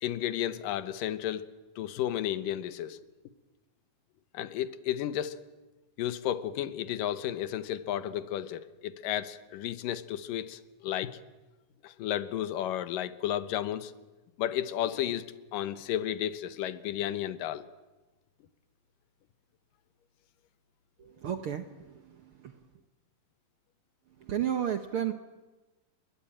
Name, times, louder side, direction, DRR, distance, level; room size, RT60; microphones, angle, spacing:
voice 1, 0.0-1.4 1.8-3.0 4.3-5.4 6.0-11.2 11.8-13.9 14.4-15.3 15.5-17.7, left 11 dB, 90° left, 13 dB, 2.7 m, -33 dB
voice 2, 21.0-22.8 24.1-25.1, right 9 dB, 65° right, 8 dB, 1.4 m, -34 dB
29.5 x 22.0 x 8.8 m, 1.2 s
omnidirectional pair, 3.7 m